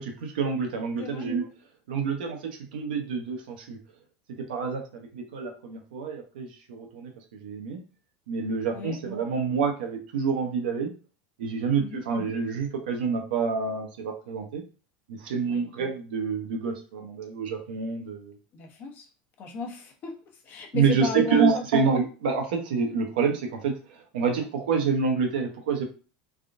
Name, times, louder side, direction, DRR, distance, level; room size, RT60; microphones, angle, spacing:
voice 1, 0.0-1.5 1.9-3.8 4.3-7.8 8.3-10.9 11.4-14.6 15.1-18.3 20.7-25.8, right 5 dB, 90° right, 3 dB, 0.8 m, -27 dB
voice 2, 18.5-19.1 19.4-21.6, left 4 dB, 45° left, 2 dB, 0.8 m, -35 dB
3.5 x 2.3 x 2.6 m, 0.36 s
supercardioid pair, 120°, 5 cm